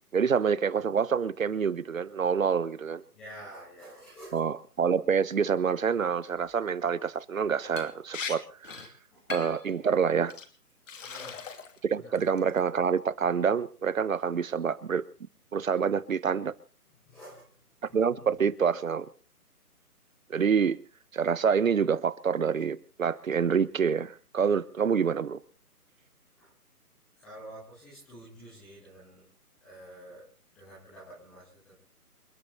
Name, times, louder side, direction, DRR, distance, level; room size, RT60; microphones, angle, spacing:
voice 1, 0.1-3.0 4.3-8.9 9.3-10.3 11.8-15.0 15.5-16.5 17.9-19.1 20.3-20.8 21.1-25.4, right 6 dB, 60° right, 1.3 m, -27 dB
voice 2, 3.1-4.4 9.1-9.3 11.0-11.4 11.9-12.1 17.1-17.5 17.9-18.2 26.4-26.5 27.2-29.2 29.6-30.2 30.5-31.7, right 1 dB, ahead, 0.7 m, -48 dB
Liquid, 7.8-8.4 8.6-8.9 9.3-9.6 10.3-10.5 10.9-11.8 12.2-12.6, left 5 dB, 55° left, 2.9 m, -39 dB
28.5 x 9.9 x 4.2 m
figure-of-eight pair, 155°, 46 cm